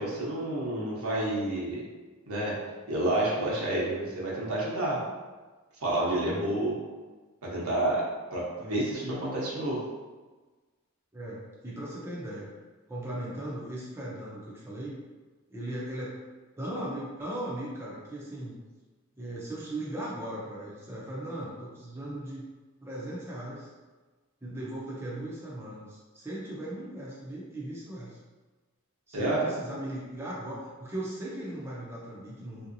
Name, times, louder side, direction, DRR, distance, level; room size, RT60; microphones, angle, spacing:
voice 1, 0.0-1.8 2.3-2.5 2.9-5.0 5.8-6.7 7.4-8.0 8.3-9.8 29.1-29.5, right 1 dB, 75° right, -5 dB, 1.0 m, -29 dB
voice 2, 11.1-12.5 12.9-15.0 15.5-16.2 16.6-18.6 19.2-22.4 22.8-23.7 24.4-28.2 29.1-32.7, right 1 dB, 10° right, -7 dB, 0.6 m, -38 dB
3.6 x 2.8 x 2.6 m, 1.3 s
head